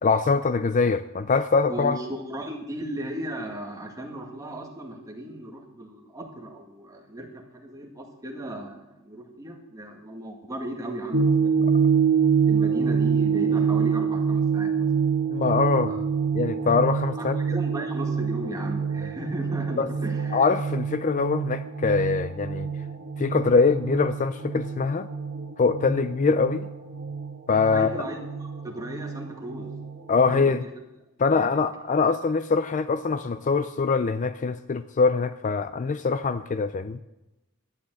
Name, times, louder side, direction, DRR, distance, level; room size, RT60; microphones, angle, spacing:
voice 1, 0.0-2.0 15.3-16.0 16.3-17.4 19.8-19.9 20.3-22.7 23.2-25.1 25.6-26.7 27.5-27.9 30.1-30.6 31.2-37.0, left 4 dB, 35° left, 0.4 m, -23 dB
voice 2, 1.7-11.9 12.5-14.9 15.9-16.0 17.2-20.5 27.7-29.7 30.3-30.7 31.3-31.6, right 1 dB, 15° right, 1.9 m, -36 dB
sound 1, 11.1-30.5, right 6 dB, 50° right, 1.6 m, -26 dB
12.0 x 10.0 x 7.6 m
head